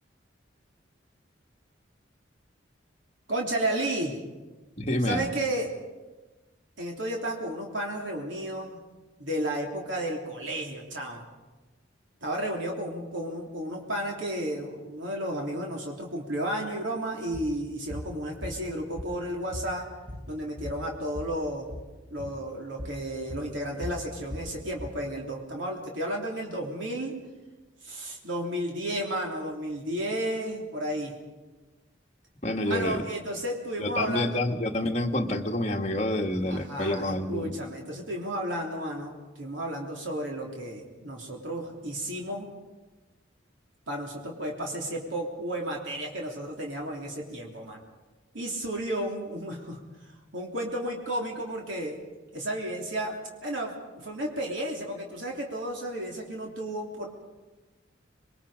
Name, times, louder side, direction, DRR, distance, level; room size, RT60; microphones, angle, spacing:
voice 1, 3.3-4.2 5.0-5.7 6.8-8.8 9.2-11.3 12.2-19.9 20.3-21.7 22.1-27.1 27.8-31.1 32.6-34.5 36.5-42.5 43.9-47.8 48.3-49.8 50.3-52.0 52.3-53.1 53.4-57.1, right 1 dB, 80° right, -1 dB, 3.3 m, -33 dB
voice 2, 4.8-5.3 32.4-33.0 33.8-37.6, left 1 dB, 35° left, 3 dB, 1.6 m, -28 dB
sound 1, 17.3-17.5 17.9-18.1 18.4-19.3 19.5-21.3 21.6-21.9 22.2-22.4 22.8-23.0 23.3-25.0, left 1 dB, 10° right, 3.4 m, -39 dB
27.5 x 22.0 x 5.1 m, 1.2 s
head